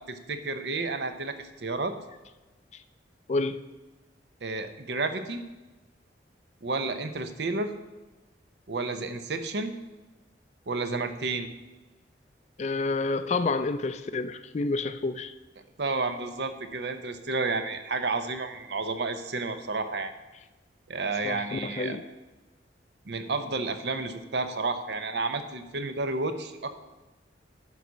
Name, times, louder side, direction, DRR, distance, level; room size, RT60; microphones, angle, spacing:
voice 1, 0.1-2.0 4.4-5.4 6.6-7.7 8.7-9.7 10.7-11.5 15.8-20.1 20.9-22.0 23.1-26.7, right 3 dB, 65° right, 0.7 m, -31 dB
voice 2, 3.3-3.6 12.6-15.3 21.2-22.0, left 3 dB, 35° left, 0.4 m, -29 dB
11.0 x 4.1 x 6.2 m
head